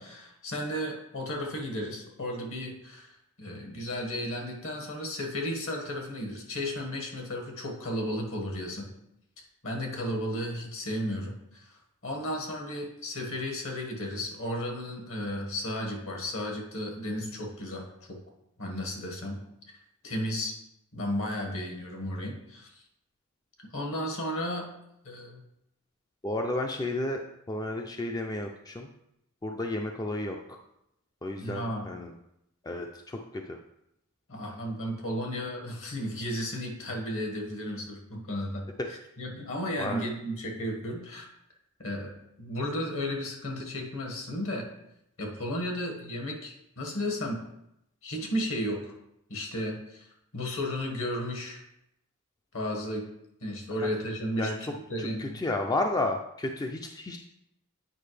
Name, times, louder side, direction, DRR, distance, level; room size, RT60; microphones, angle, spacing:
voice 1, 0.0-8.9 9.6-18.2 18.6-19.4 19.7-19.8 20.0-20.5 20.9-22.7 23.7-24.7 25.0-25.4 31.4-31.9 34.3-41.2 41.8-44.6 45.2-47.4 48.0-48.9 49.3-50.1 50.3-51.6 52.5-53.1 53.4-55.3, equal, 65° left, 2 dB, 1.5 m, -34 dB
voice 2, 26.2-27.2 27.5-28.9 29.4-30.4 31.2-32.1 32.6-33.6 39.8-40.1 53.8-53.9 54.4-54.7 55.0-57.2, left 2 dB, 15° left, 3 dB, 0.4 m, -32 dB
8.6 x 4.9 x 3.2 m, 0.80 s
head